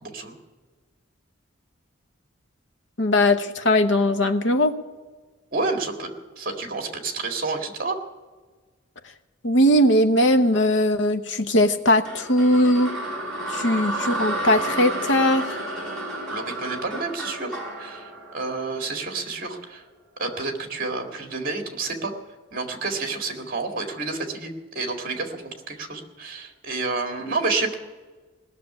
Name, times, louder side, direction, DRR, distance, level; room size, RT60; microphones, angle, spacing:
voice 1, 0.0-0.4 5.5-6.1 6.4-8.0 16.3-19.8 20.2-22.1 22.5-27.7, right 3 dB, 45° right, 3 dB, 2.0 m, -29 dB
voice 2, 3.0-4.7 9.4-12.9 13.5-15.6 27.2-27.3, left 1 dB, 65° left, 8 dB, 1.0 m, -20 dB
sound 1, 12.0-19.2, right 1 dB, 5° left, 5.0 m, -31 dB
18.0 x 6.8 x 9.6 m, 1.3 s
head